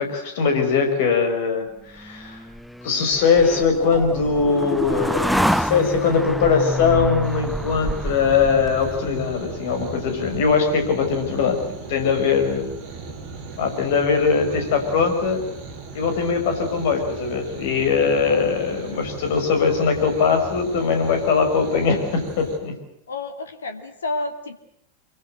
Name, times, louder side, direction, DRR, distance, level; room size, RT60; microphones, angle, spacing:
voice 1, 0.0-1.7 1.9-2.4 2.8-11.6 11.9-12.7 13.6-15.4 15.9-22.7, left 5 dB, 50° left, 6 dB, 5.9 m, -21 dB
sound 1, 2.0-9.4, equal, ahead, 1.0 m, -27 dB
sound 2, 7.2-22.6, right 4 dB, 45° right, 5.9 m, -38 dB
voice 2, 23.1-24.6, left 2 dB, 70° left, 8 dB, 2.4 m, -30 dB
25.5 x 23.5 x 7.9 m, 0.74 s
figure-of-eight pair, 90°, 0 cm